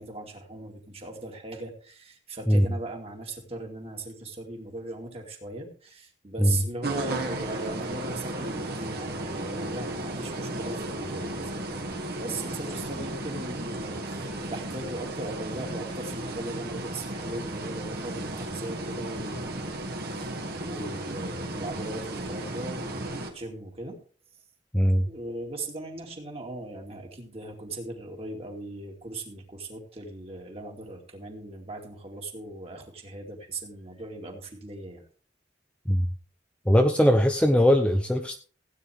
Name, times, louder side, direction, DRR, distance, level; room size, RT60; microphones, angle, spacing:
voice 1, 0.0-11.9 12.1-24.0 24.9-35.0, right 2 dB, 30° right, 2 dB, 2.5 m, -38 dB
sound 1, 6.8-23.3, right 1 dB, 50° right, 2.2 m, -34 dB
voice 2, 24.7-25.1 35.9-36.1 36.7-38.4, equal, 5° left, 5 dB, 0.6 m, -20 dB
16.5 x 9.4 x 3.5 m, 0.41 s
head